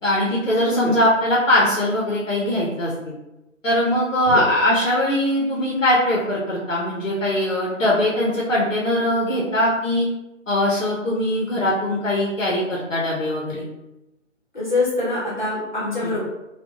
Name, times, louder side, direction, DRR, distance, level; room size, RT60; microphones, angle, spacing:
voice 1, 0.0-3.1 3.6-10.1 10.5-13.7 16.0-16.1, left 1 dB, 75° left, -4 dB, 0.8 m, -21 dB
voice 2, 14.5-16.2, left 2 dB, 35° left, -8 dB, 0.9 m, -24 dB
2.8 x 2.3 x 2.3 m, 0.94 s
figure-of-eight pair, 155°, 39 cm